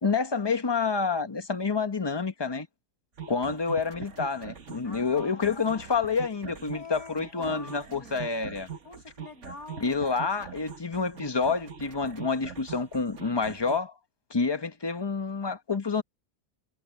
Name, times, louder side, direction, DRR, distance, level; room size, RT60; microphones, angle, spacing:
voice 1, 0.0-2.7 3.3-8.7 9.8-13.9 14.3-16.0, left 4 dB, 20° left, 0.9 m, -28 dB
sound 1, 3.2-13.8, right 7 dB, 50° right, 1.7 m, -43 dB
voice 2, 4.8-5.5 6.7-8.4 8.8-10.2, left 3 dB, 65° left, 7.7 m, -46 dB
omnidirectional pair, 1.7 m